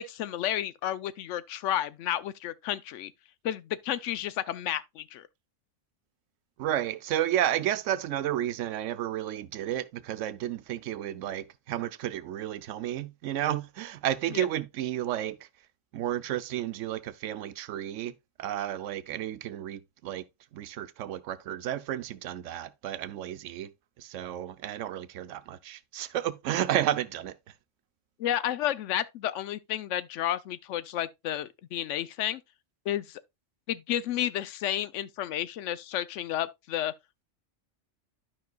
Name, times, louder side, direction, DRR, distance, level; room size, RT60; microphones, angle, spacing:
voice 1, 0.0-3.1 3.4-5.3 14.3-14.5 28.2-32.4 32.9-33.2 33.7-36.9, left 11 dB, 75° left, 0.9 m, -31 dB
voice 2, 6.6-15.4 15.9-18.1 18.4-20.2 20.5-23.7 24.0-27.3, right 11 dB, 85° right, 1.0 m, -32 dB
12.0 x 5.3 x 2.3 m
omnidirectional pair, 1.3 m